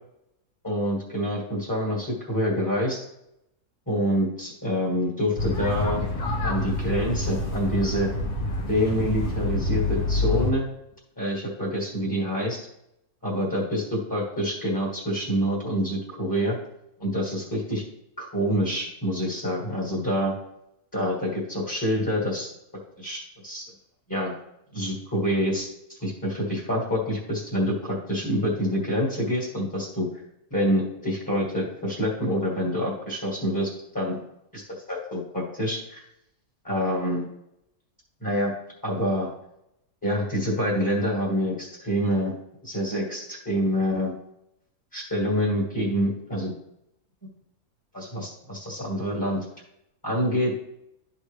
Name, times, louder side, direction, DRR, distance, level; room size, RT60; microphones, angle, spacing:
voice 1, 0.6-3.0 3.9-6.1 6.4-8.1 8.7-10.7 11.2-12.7 13.2-16.6 17.0-17.8 18.2-20.3 20.9-22.5 23.0-23.6 24.1-24.3 24.7-30.1 30.5-34.2 34.5-34.6 34.9-36.0 36.6-37.2 38.2-38.5 38.8-39.3 40.0-42.3 42.6-44.1 44.9-46.5 47.9-49.4 50.0-50.5, equal, 10° left, -4 dB, 1.8 m, -26 dB
sound 1, 5.4-10.5, left 2 dB, 50° left, 1.7 m, -27 dB
12.5 x 4.2 x 3.2 m, 0.83 s
omnidirectional pair, 1.7 m